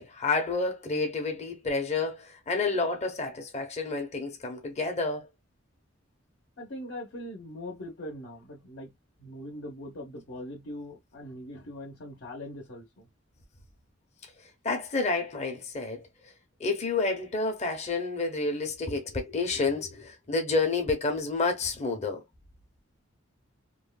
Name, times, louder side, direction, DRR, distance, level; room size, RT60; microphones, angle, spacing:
voice 1, 0.0-5.3 14.6-16.1 16.6-22.2, left 3 dB, 35° left, 0.8 m, -29 dB
voice 2, 6.6-8.9 9.2-13.1, left 1 dB, 70° left, 1.0 m, -41 dB
3.1 x 2.2 x 2.2 m
head